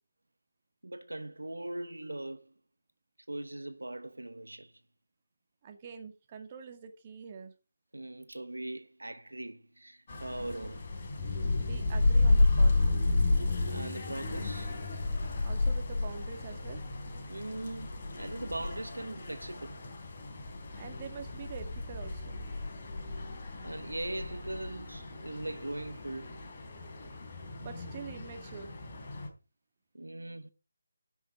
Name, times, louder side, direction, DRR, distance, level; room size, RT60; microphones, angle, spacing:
voice 1, 0.8-2.5 3.3-4.7 7.9-10.9 13.7-14.8 17.3-19.8 23.6-26.4 29.9-30.5, right 1 dB, 80° right, 0.9 m, -40 dB
voice 2, 5.6-7.5 11.6-13.0 15.4-16.8 20.8-22.4 27.6-28.7, right 6 dB, 30° right, 1.9 m, -45 dB
sound 1, 10.1-29.3, left 2 dB, 35° left, 3.7 m, -32 dB
10.5 x 6.3 x 7.4 m
figure-of-eight pair, 155°, 0 cm